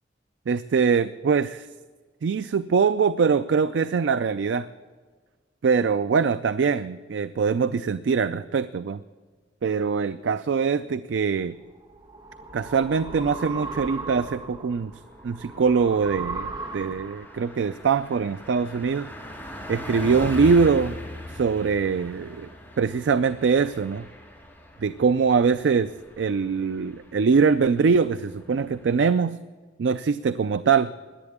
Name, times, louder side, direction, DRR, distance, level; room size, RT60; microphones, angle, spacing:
voice 1, 0.5-1.7 2.2-4.7 5.6-9.0 9.6-11.6 12.5-14.9 15.2-19.1 19.7-21.0 21.3-22.5 22.8-24.1 24.8-25.9 26.2-29.4 29.8-30.9, right 5 dB, 75° right, 12 dB, 0.4 m, -23 dB
sound 1, 11.6-17.4, right 3 dB, 25° right, 1.2 m, -37 dB
Car passing by, 13.9-14.0 14.3-14.4 14.7-29.0, left 1 dB, 10° left, 3.2 m, -41 dB
17.5 x 11.0 x 3.6 m, 1.5 s
head